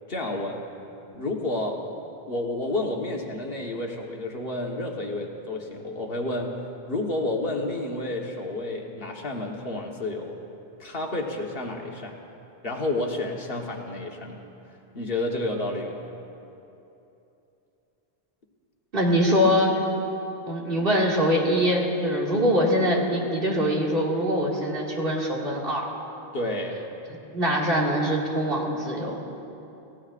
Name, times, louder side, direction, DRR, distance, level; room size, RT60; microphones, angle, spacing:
voice 1, 0.1-0.6 1.1-1.8 2.3-6.6 6.9-10.4 10.8-12.2 12.6-14.5 14.9-16.0 26.3-26.8, left 2 dB, 60° left, 0 dB, 1.5 m, -30 dB
voice 2, 18.9-19.7 20.5-25.9 27.3-29.2, equal, 60° right, -3 dB, 2.4 m, -23 dB
28.0 x 16.0 x 2.5 m, 2.9 s
omnidirectional pair, 1.1 m